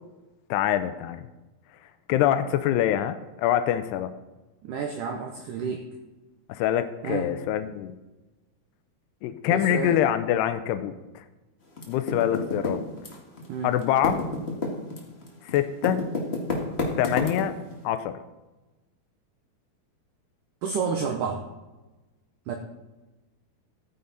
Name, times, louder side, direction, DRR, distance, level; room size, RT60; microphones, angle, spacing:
voice 1, 0.5-1.2 2.1-4.1 6.5-7.9 9.2-11.0 11.9-12.8 13.6-14.2 15.5-16.1 17.0-17.5 17.8-18.2, left 11 dB, 85° left, 11 dB, 2.7 m, -25 dB
voice 2, 4.6-5.9 7.0-7.3 9.5-10.0 13.5-13.8 20.6-21.5 22.5-22.6, right 6 dB, 75° right, 4 dB, 2.0 m, -30 dB
Typing, 11.8-13.5 13.7-17.7, left 2 dB, 60° left, 0.6 m, -29 dB
14.0 x 9.5 x 4.0 m, 1.1 s
omnidirectional pair, 4.7 m